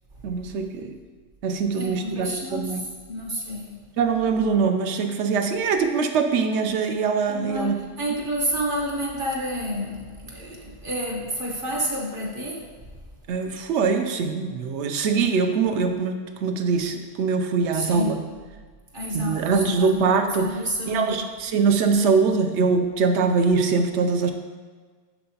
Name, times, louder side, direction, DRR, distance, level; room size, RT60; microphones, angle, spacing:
voice 1, 0.2-0.9 1.4-2.8 4.0-7.8 13.3-18.2 19.1-20.6 20.9-24.3, right 5 dB, 90° right, 6 dB, 0.9 m, -23 dB
voice 2, 1.7-2.8 3.1-3.8 7.3-12.7 17.7-18.1 18.9-21.2, equal, 55° right, -2 dB, 1.2 m, -29 dB
6.4 x 5.8 x 2.8 m, 1.5 s
omnidirectional pair, 1.1 m